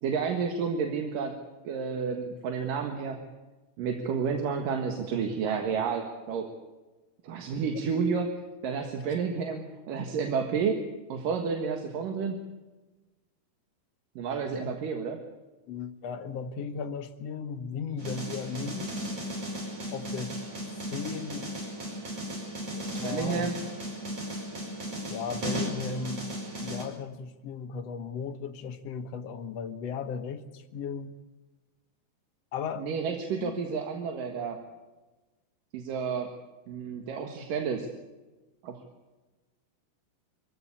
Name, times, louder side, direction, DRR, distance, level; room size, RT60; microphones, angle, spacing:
voice 1, 0.0-1.3 1.6-3.2 3.8-6.5 7.2-8.3 8.6-10.8 11.1-12.4 14.2-15.2 23.0-23.6 32.8-34.6 35.7-36.3 36.7-37.9 38.6-38.7, right 6 dB, 65° right, 4 dB, 3.2 m, -30 dB
voice 2, 15.7-18.9 19.9-20.3 20.9-21.5 22.7-23.5 25.1-26.2 26.6-31.1 32.5-32.9 33.4-33.6, left 6 dB, 65° left, 8 dB, 1.7 m, -36 dB
sound 1, 18.0-26.8, equal, 40° right, 6.1 m, -36 dB
25.0 x 16.0 x 8.6 m, 1.2 s
omnidirectional pair, 4.4 m